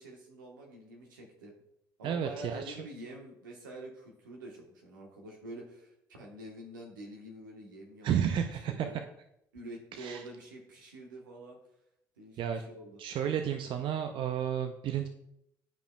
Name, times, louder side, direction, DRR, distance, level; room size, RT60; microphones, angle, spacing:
voice 1, 0.0-1.5 2.0-8.1 8.5-9.0 9.5-11.6 12.2-13.0, right 1 dB, 85° right, 0 dB, 1.1 m, -47 dB
voice 2, 2.0-2.8 8.0-8.9 10.0-10.2 12.4-12.6 13.0-15.1, right 9 dB, 55° right, 7 dB, 0.5 m, -32 dB
10.0 x 5.0 x 2.3 m, 0.80 s
hypercardioid pair, 50°, 10 cm